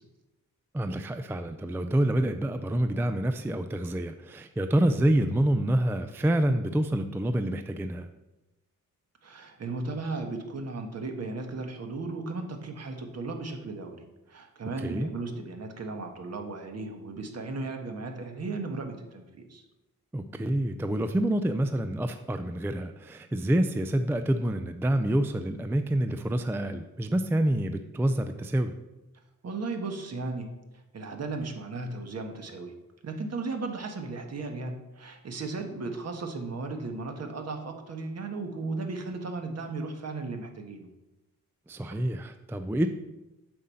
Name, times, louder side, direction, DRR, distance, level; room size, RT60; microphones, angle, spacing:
voice 1, 0.7-8.1 14.8-15.1 20.1-28.8 41.7-42.9, right 1 dB, 5° right, 8 dB, 0.4 m, -27 dB
voice 2, 9.2-19.6 29.4-30.5 30.9-32.7 33.0-40.9, right 3 dB, 45° right, 4 dB, 1.4 m, -36 dB
7.7 x 5.6 x 7.6 m, 1.0 s
wide cardioid pair, 140°, 34 cm